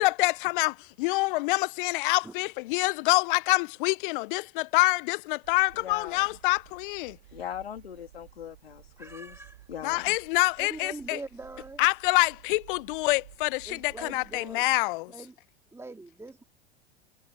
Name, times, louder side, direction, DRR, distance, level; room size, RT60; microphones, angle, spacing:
voice 1, 0.0-7.2 9.8-11.2 11.8-15.1, left 23 dB, 60° left, 1.0 m, -26 dB
sound 1, 5.4-14.5, right 14 dB, 70° right, 3.7 m, -54 dB
voice 2, 5.7-6.3 7.3-9.4 9.7-10.2, left 9 dB, 80° left, 2.8 m, -40 dB
voice 3, 9.0-9.7 10.6-11.8 13.7-14.7 15.1-15.3 15.7-16.4, right 2 dB, 10° right, 3.0 m, -43 dB
hypercardioid pair, 85°, 30 cm